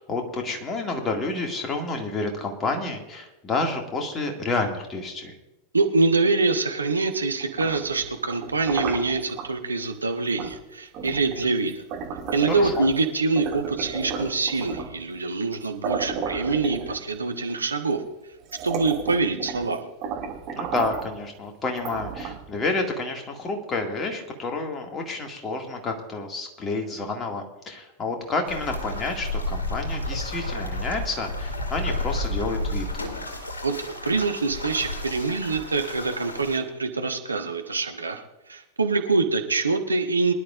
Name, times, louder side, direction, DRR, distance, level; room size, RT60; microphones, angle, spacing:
voice 1, 0.0-5.4 12.5-12.9 20.5-32.9, left 3 dB, 25° left, 2 dB, 2.2 m, -29 dB
voice 2, 5.7-11.8 12.3-18.0 18.6-19.9 33.6-38.2 38.5-40.3, right 3 dB, 75° right, 5 dB, 1.2 m, -25 dB
sound 1, 7.4-9.5 10.4-10.6 10.9-13.0 13.4-15.0 15.5-15.6 15.8-17.3 18.0-18.1 18.4-19.7 20.0-21.2 21.8-22.6, right 6 dB, 40° right, 2.2 m, -33 dB
sound 2, 28.5-36.6, left 1 dB, 75° left, 2.1 m, -31 dB
23.5 x 11.0 x 2.5 m, 0.96 s
figure-of-eight pair, 90°, 0 cm